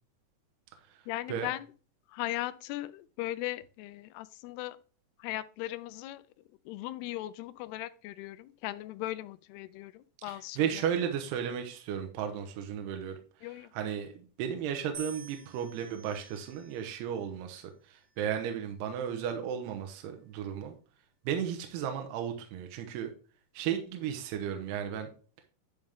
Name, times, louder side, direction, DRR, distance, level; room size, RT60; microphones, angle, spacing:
voice 1, 1.1-1.7 2.1-4.8 5.2-6.2 6.7-10.9 13.4-13.7, left 16 dB, 85° left, 2.5 m, -38 dB
voice 2, 10.6-13.2 13.7-20.7 21.3-23.1 23.5-25.1, right 8 dB, 80° right, 3.0 m, -34 dB
sound 1, 14.9-17.2 18.0-18.5, right 4 dB, 50° right, 1.8 m, -50 dB
10.5 x 5.4 x 3.5 m
omnidirectional pair, 4.8 m